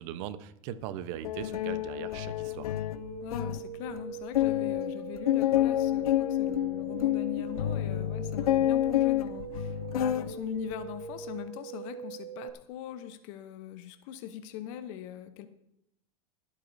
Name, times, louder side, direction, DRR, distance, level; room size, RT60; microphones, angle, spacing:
voice 1, 0.0-2.7, right 11 dB, 60° right, 12 dB, 0.9 m, -39 dB
sound 1, 1.2-3.6 4.0-4.1 4.3-10.3 10.7-11.1, left 13 dB, 90° left, 0.5 m, -29 dB
sound 2, 3.0-12.5, right 8 dB, 75° right, 1.4 m, -42 dB
voice 2, 3.2-15.5, left 10 dB, 60° left, 10 dB, 0.9 m, -41 dB
23.0 x 8.4 x 2.7 m, 0.84 s
hypercardioid pair, 110°, 18 cm